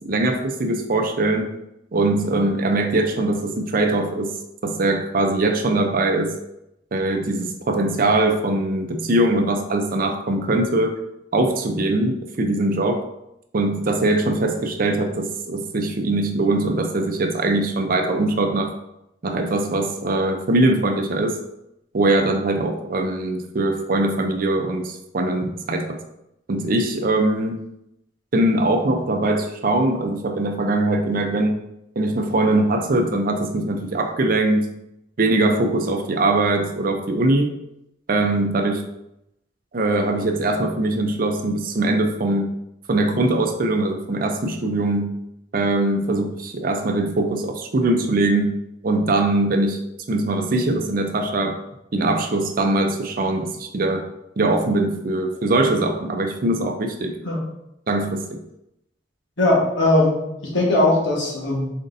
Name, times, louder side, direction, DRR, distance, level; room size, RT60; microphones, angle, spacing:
voice 1, 0.0-1.5 1.9-4.3 4.6-6.3 6.9-10.9 11.3-13.0 13.5-18.7 19.2-21.4 21.9-26.0 26.5-27.6 28.3-31.6 32.0-34.7 35.2-37.5 38.1-38.8 39.7-42.5 42.9-45.2 45.5-49.8 50.1-51.6 51.9-54.1 54.4-57.2 57.9-58.4, right 2 dB, 50° right, 5 dB, 0.5 m, -21 dB
voice 2, 59.4-61.7, left 2 dB, 90° left, -3 dB, 1.4 m, -19 dB
4.3 x 3.9 x 2.6 m, 0.84 s
head